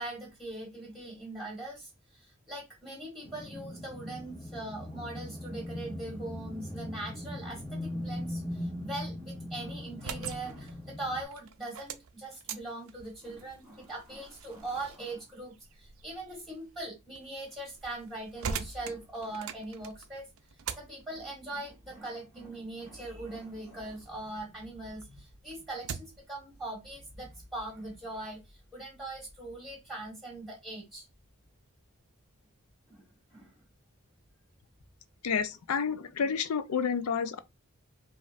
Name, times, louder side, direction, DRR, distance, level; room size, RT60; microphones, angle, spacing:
voice 1, 0.0-20.3 20.8-31.1 32.9-33.6, right 2 dB, ahead, 1.4 m, -41 dB
sound 1, 3.2-11.2, left 1 dB, 20° left, 1.2 m, -40 dB
sound 2, 9.8-24.5 24.9-26.3, right 6 dB, 70° right, 0.4 m, -44 dB
voice 2, 35.2-37.4, left 6 dB, 85° left, 0.5 m, -30 dB
5.0 x 2.6 x 2.5 m
head